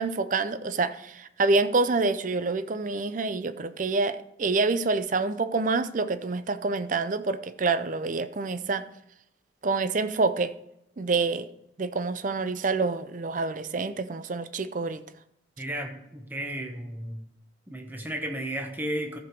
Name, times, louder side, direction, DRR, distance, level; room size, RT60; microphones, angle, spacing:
voice 1, 0.0-8.8 9.6-10.5 11.0-11.5 11.8-15.0, right 3 dB, 40° right, 12 dB, 0.5 m, -27 dB
voice 2, 15.6-17.2 17.7-19.2, right 1 dB, 10° right, 3 dB, 1.0 m, -33 dB
13.5 x 5.1 x 4.6 m, 0.79 s
head